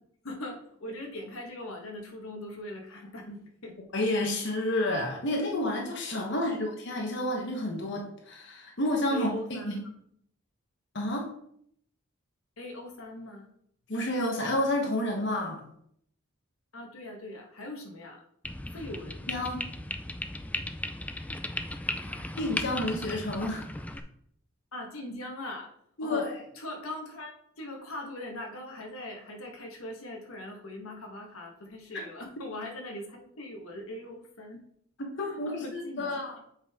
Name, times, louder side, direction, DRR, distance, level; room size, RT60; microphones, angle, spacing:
voice 1, 0.2-3.8 6.3-6.6 9.1-9.9 12.6-13.5 16.7-18.2 18.7-19.3 22.0-22.3 24.7-25.7 26.0-26.2 26.5-34.6 35.2-36.1, left 1 dB, 90° left, 1 dB, 1.4 m, -41 dB
voice 2, 3.9-9.3 9.6-9.7 10.9-11.3 13.9-15.6 19.3-19.6 22.4-23.7 26.0-26.3 31.9-32.0 35.0-36.3, left 1 dB, 55° left, 0 dB, 1.1 m, -30 dB
sound 1, 18.4-24.0, left 1 dB, 5° left, 0.3 m, -36 dB
7.4 x 5.3 x 3.6 m, 0.69 s
head